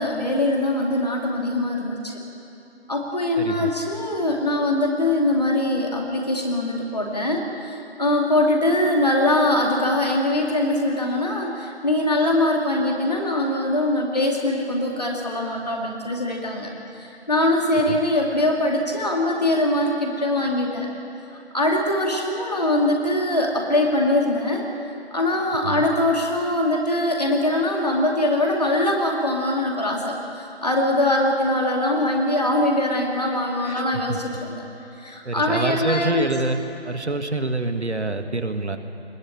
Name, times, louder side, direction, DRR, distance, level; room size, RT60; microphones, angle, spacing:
voice 1, 0.0-2.2 2.9-16.7 17.0-20.9 21.5-24.7 25.1-34.6 35.0-36.3, left 1 dB, 35° left, 0 dB, 2.5 m, -22 dB
voice 2, 3.4-3.7 17.9-18.0 25.6-25.9 33.6-34.2 35.2-36.6 36.8-38.8, right 2 dB, 80° right, 7 dB, 1.7 m, -26 dB
21.0 x 15.5 x 8.5 m, 2.8 s
figure-of-eight pair, 175°, 33 cm